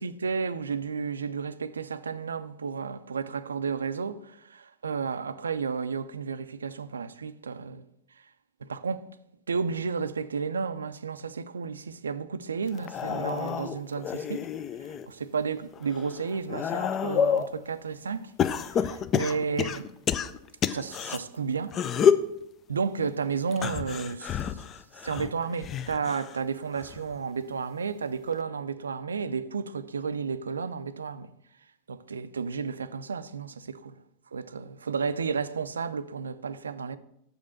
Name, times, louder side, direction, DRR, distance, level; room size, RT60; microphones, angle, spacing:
voice 1, 0.0-7.8 8.6-9.0 9.5-14.5 15.1-18.3 18.7-19.9 20.7-22.2 22.7-24.6 25.0-31.3 31.9-34.0 34.3-37.0, right 5 dB, 70° right, 0.4 m, -32 dB
sound 1, 12.7-15.1 15.6-17.5 18.4-21.2 21.7-22.3 23.5-26.4 26.7-27.2 28.3-28.4, left 7 dB, 30° left, 0.4 m, -28 dB
6.7 x 5.2 x 6.4 m
figure-of-eight pair, 90°, 0 cm